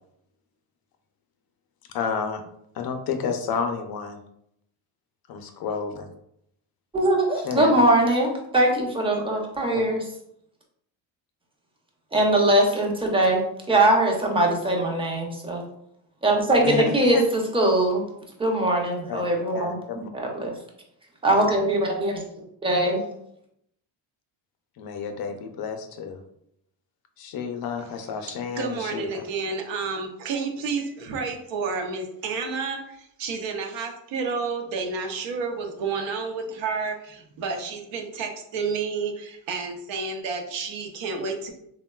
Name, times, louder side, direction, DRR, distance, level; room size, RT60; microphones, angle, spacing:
voice 1, 1.9-2.4 2.7-4.2 5.3-6.1 7.4-7.8 9.7-9.8 16.6-17.2 19.1-19.2 19.5-20.1 24.8-26.2 27.2-29.2, left 6 dB, 55° left, 6 dB, 0.5 m, -30 dB
voice 2, 6.9-10.0 12.1-15.6 16.2-18.0 18.4-19.8 20.1-20.5 21.2-22.1 22.6-23.0, right 1 dB, 10° right, 0 dB, 0.5 m, -21 dB
voice 3, 28.6-41.5, right 4 dB, 80° right, 4 dB, 0.7 m, -30 dB
3.5 x 2.2 x 2.2 m, 0.75 s
cardioid pair, 115°, 46 cm